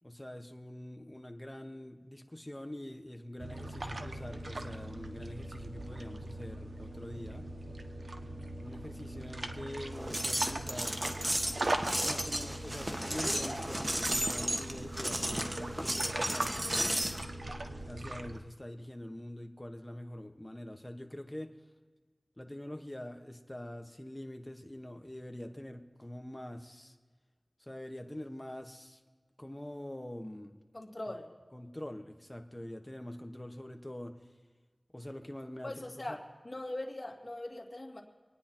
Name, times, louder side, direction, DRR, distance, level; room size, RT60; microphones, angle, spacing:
voice 1, 0.0-7.5 8.6-11.0 12.0-17.0 17.9-21.5 22.4-26.9 27.6-29.0 29.4-30.5 31.5-34.1 34.9-36.2, left 1 dB, 20° left, 5 dB, 1.4 m, -44 dB
sound 1, 3.4-18.4, right 1 dB, 65° right, 1.1 m, -40 dB
sound 2, 9.9-17.2, right 1 dB, 20° right, 1.4 m, -34 dB
voice 2, 30.7-31.3 35.6-36.2 36.4-38.0, left 1 dB, 45° left, -1 dB, 2.7 m, -41 dB
25.5 x 9.6 x 4.5 m, 1.4 s
wide cardioid pair, 60°, 0 cm